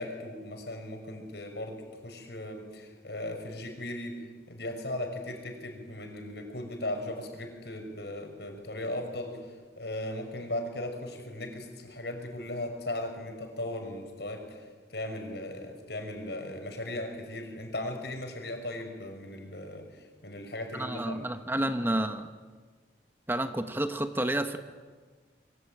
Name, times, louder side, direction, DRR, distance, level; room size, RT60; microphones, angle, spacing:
voice 1, 0.0-4.2 4.5-21.2, left 1 dB, 70° left, 4 dB, 6.0 m, -37 dB
voice 2, 20.7-22.3 23.3-24.6, right 1 dB, 10° right, 8 dB, 1.1 m, -30 dB
26.0 x 23.5 x 9.1 m, 1.4 s
head